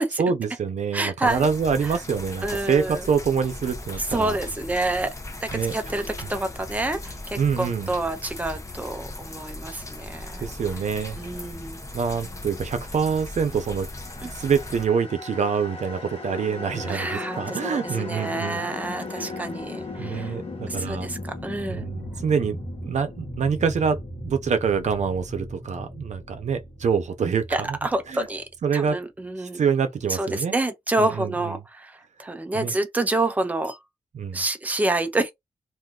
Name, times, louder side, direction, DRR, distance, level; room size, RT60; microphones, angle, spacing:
voice 1, 0.2-4.4 5.5-5.8 7.4-8.0 10.4-11.2 11.9-13.9 14.3-18.7 19.1-19.3 20.0-21.1 21.7-27.8 28.1-28.3 28.6-29.0 29.4-30.5 31.0-31.6 32.5-32.7 34.1-34.4, right 6 dB, 85° right, 0.6 m, -26 dB
voice 2, 0.9-1.5 2.4-3.0 4.1-5.1 5.4-10.5 11.2-11.8 14.2-14.3 16.9-20.4 20.7-21.8 27.5-28.4 28.7-29.6 30.1-33.8 34.3-35.3, right 2 dB, 15° right, 0.5 m, -28 dB
sound 1, 1.2-14.9, left 2 dB, 25° left, 0.7 m, -38 dB
sound 2, 13.5-28.7, left 2 dB, 55° left, 1.0 m, -37 dB
2.6 x 2.4 x 3.6 m
wide cardioid pair, 140°, 12 cm